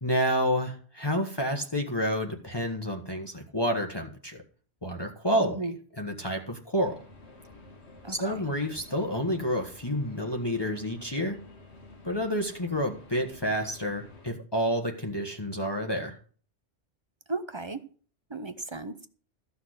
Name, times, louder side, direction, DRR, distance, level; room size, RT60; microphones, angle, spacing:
voice 1, 0.0-4.4 4.8-5.6 6.0-7.0 8.1-11.4 12.0-16.2, equal, 20° left, 1.4 m, -29 dB
voice 2, 5.4-5.7 8.0-8.5 17.3-17.8 18.3-19.1, right 3 dB, 30° right, 0.7 m, -35 dB
sound 1, 6.8-14.3, left 2 dB, 70° left, 2.0 m, -51 dB
14.0 x 6.1 x 6.4 m
omnidirectional pair, 1.2 m